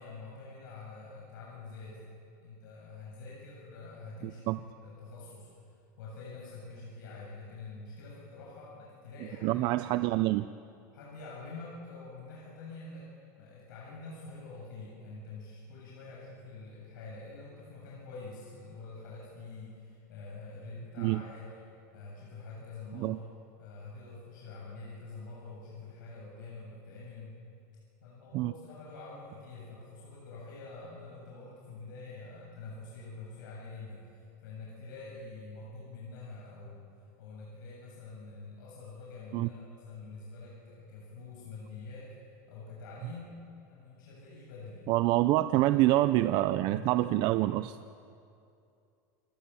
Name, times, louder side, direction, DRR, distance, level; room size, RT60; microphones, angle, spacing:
voice 1, 0.0-2.1 2.4-5.5 6.0-9.7 10.9-13.1 13.4-21.6 21.9-23.2 23.6-27.3 28.0-36.9 37.2-42.1 42.5-44.9 45.5-47.5, left 3 dB, 90° left, -5 dB, 7.5 m, -46 dB
voice 2, 9.4-10.5 21.0-21.2 22.9-23.2 28.3-28.5 39.3-39.5 44.9-47.8, right 16 dB, 50° right, 13 dB, 0.6 m, -26 dB
29.0 x 18.0 x 7.1 m, 2.5 s
supercardioid pair, 145°, 10 cm